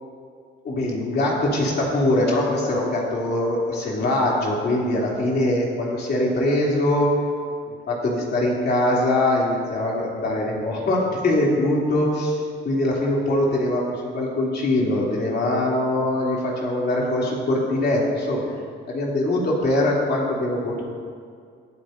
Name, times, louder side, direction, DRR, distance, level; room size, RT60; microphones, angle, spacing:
voice 1, 0.6-7.1 7.7-18.4 18.9-20.8, left 1 dB, 55° left, -4 dB, 3.0 m, -22 dB
22.0 x 8.6 x 2.7 m, 2.2 s
cardioid pair, 90°, 20 cm